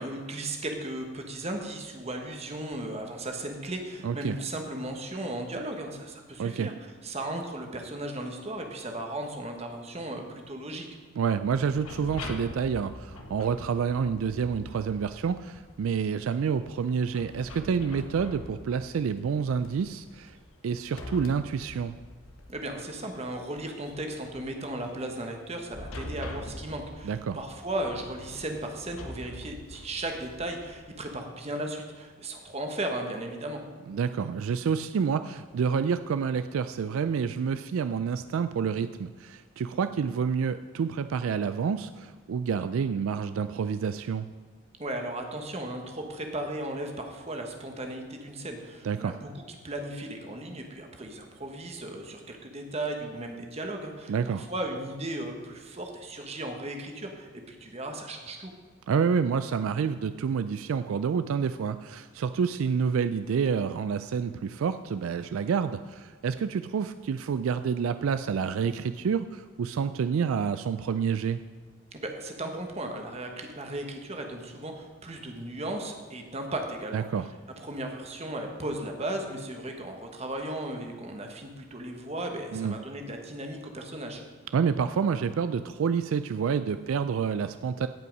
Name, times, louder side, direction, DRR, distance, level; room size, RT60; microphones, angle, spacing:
voice 1, 0.0-6.7 7.0-10.9 22.5-33.6 44.8-58.5 71.9-77.1 77.6-84.2, right 1 dB, 30° right, 3 dB, 1.2 m, -36 dB
voice 2, 4.0-4.4 6.4-6.7 11.2-20.4 20.6-22.0 27.0-27.4 33.9-44.3 48.8-49.2 54.1-54.5 58.9-71.4 76.9-77.3 82.5-82.8 84.5-87.9, right 6 dB, 70° right, 11 dB, 0.3 m, -28 dB
sound 1, 11.4-31.2, left 1 dB, 75° left, 1.2 m, -45 dB
16.5 x 5.6 x 5.3 m, 1.5 s
head